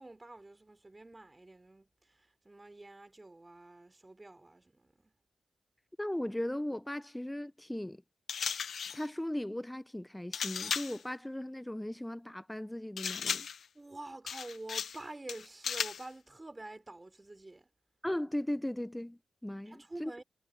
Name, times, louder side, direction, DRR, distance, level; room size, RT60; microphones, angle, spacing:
voice 1, 0.0-5.2 13.7-17.7 19.7-20.2, right 2 dB, 25° right, 4.1 m, -48 dB
voice 2, 6.0-8.0 8.9-13.5 18.0-20.1, left 1 dB, 10° left, 0.7 m, -37 dB
sound 1, 8.3-9.1 10.3-11.0 13.0-13.7 14.3-15.0 15.3-16.1, left 7 dB, 75° left, 0.8 m, -36 dB
supercardioid pair, 50°, 0 cm